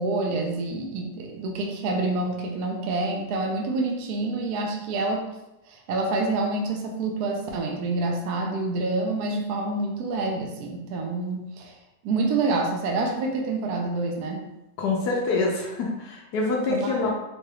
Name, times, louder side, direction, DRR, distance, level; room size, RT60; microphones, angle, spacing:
voice 1, 0.0-5.2 5.7-11.7 12.0-14.4 16.7-17.1, right 3 dB, 70° right, 1 dB, 0.9 m, -27 dB
voice 2, 14.8-17.1, left 3 dB, 70° left, -1 dB, 1.0 m, -26 dB
4.0 x 3.2 x 2.3 m, 0.92 s
omnidirectional pair, 2.2 m